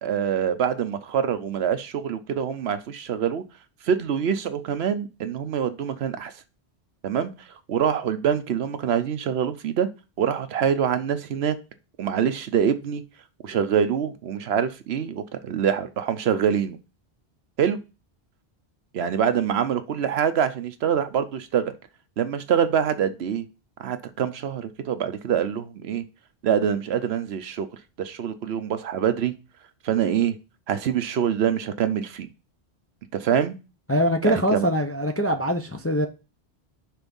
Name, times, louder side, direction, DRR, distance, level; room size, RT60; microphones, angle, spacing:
voice 1, 0.0-3.4 3.8-6.3 7.0-7.3 7.7-9.9 10.2-11.6 12.0-13.0 13.4-16.8 17.6-17.8 18.9-21.7 22.2-23.4 23.8-26.0 26.4-27.7 28.0-29.3 29.8-30.4 30.7-32.3 33.1-33.6 34.2-34.7, right 8 dB, 75° right, 0.9 m, -25 dB
voice 2, 33.9-36.1, equal, 20° left, 0.4 m, -23 dB
6.1 x 3.5 x 5.2 m
omnidirectional pair, 1.1 m